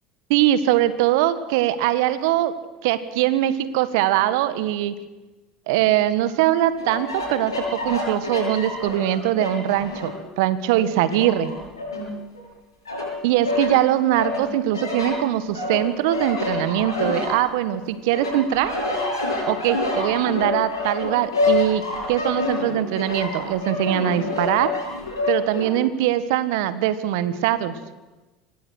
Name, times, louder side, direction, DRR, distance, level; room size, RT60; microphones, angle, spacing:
voice 1, 0.3-2.5 2.8-4.9 5.7-11.5 13.2-18.7 19.5-24.7 25.3-27.7, right 13 dB, 65° right, 14 dB, 1.6 m, -22 dB
sound 1, 6.8-10.2 10.7-12.4 12.8-13.7 14.2-17.8 18.1-25.7, left 2 dB, 90° left, 8.0 m, -27 dB
25.5 x 19.5 x 6.5 m, 1.1 s
hypercardioid pair, 70°, 2 cm